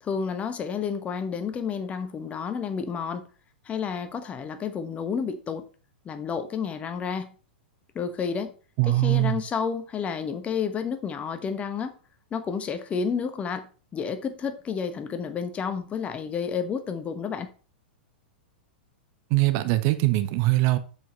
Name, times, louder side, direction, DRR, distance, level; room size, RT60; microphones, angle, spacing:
voice 1, 0.0-3.3 3.6-5.7 6.0-7.3 7.9-8.5 8.9-12.0 12.3-13.7 13.9-17.5, left 6 dB, 25° left, 1.2 m, -30 dB
voice 2, 8.8-9.4 19.3-20.8, right 18 dB, 45° right, 1.1 m, -22 dB
7.8 x 7.3 x 4.1 m
figure-of-eight pair, 100°, 6 cm